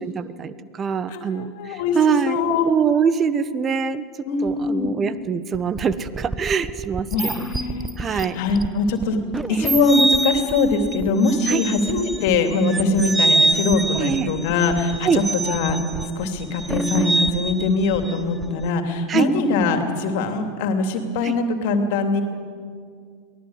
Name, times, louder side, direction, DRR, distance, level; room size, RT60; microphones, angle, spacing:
voice 1, 0.0-4.0 4.4-7.4 8.0-8.4 9.5-9.7 11.5-11.7 13.9-14.3 15.0-15.2 19.1-19.3 21.2-21.4, right 6 dB, 30° right, 14 dB, 1.2 m, -24 dB
voice 2, 1.1-2.0 2.3-2.7 4.2-4.9 7.1-9.2 9.5-15.8 16.2-22.2, left 3 dB, 60° left, 5 dB, 2.9 m, -22 dB
sound 1, 5.5-18.7, right 2 dB, 10° right, 0.8 m, -26 dB
23.5 x 18.5 x 8.2 m, 2.1 s
figure-of-eight pair, 85°, 0 cm